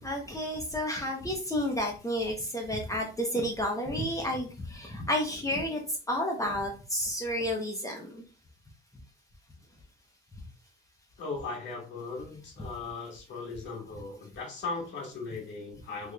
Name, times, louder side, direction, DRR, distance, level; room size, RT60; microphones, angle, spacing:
voice 1, 0.0-5.8 6.1-8.2, equal, 15° left, 0 dB, 0.8 m, -31 dB
voice 2, 11.2-16.1, left 4 dB, 70° left, -1 dB, 1.6 m, -38 dB
3.5 x 3.1 x 2.3 m, 0.34 s
cardioid pair, 90°, 20 cm